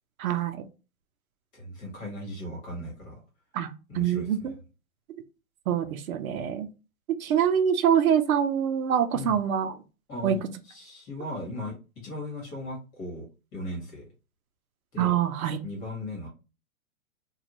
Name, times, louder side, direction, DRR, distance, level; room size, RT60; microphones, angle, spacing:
voice 1, 0.2-0.6 3.5-3.7 3.9-4.5 5.7-6.7 7.1-9.8 10.2-10.4 15.0-15.6, right 9 dB, 80° right, 9 dB, 0.6 m, -25 dB
voice 2, 1.5-3.2 3.9-4.5 9.1-9.4 10.1-10.4 10.7-11.7 12.0-14.1 14.9-15.1 15.6-16.3, left 1 dB, 25° left, -2 dB, 1.2 m, -37 dB
2.5 x 2.3 x 2.9 m, 0.32 s
hypercardioid pair, 140°, 42 cm